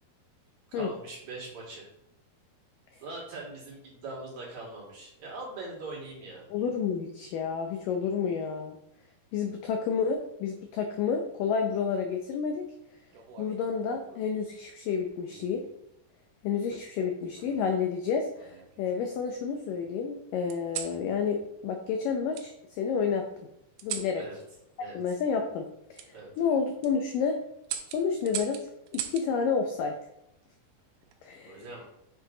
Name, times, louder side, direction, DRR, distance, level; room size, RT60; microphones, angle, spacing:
voice 1, 0.7-1.9 3.0-6.5 24.1-24.4 24.8-25.2 26.1-26.3 31.4-31.9, right 2 dB, 50° right, -4 dB, 3.1 m, -41 dB
voice 2, 6.5-8.8 9.3-12.7 13.4-15.7 16.4-23.2 23.8-24.2 24.9-27.4 27.9-29.9 31.2-31.6, left 6 dB, 85° left, 4 dB, 1.9 m, -30 dB
sound 1, 13.1-14.3 15.3-15.7 17.0-17.7 18.4-19.3 20.5-21.0 22.3-22.5 23.8-24.2 25.9-26.1 26.6-26.9 27.6-29.3 30.8-31.2, right 9 dB, 80° right, 2.9 m, -40 dB
7.6 x 7.1 x 3.9 m, 0.81 s
omnidirectional pair, 4.9 m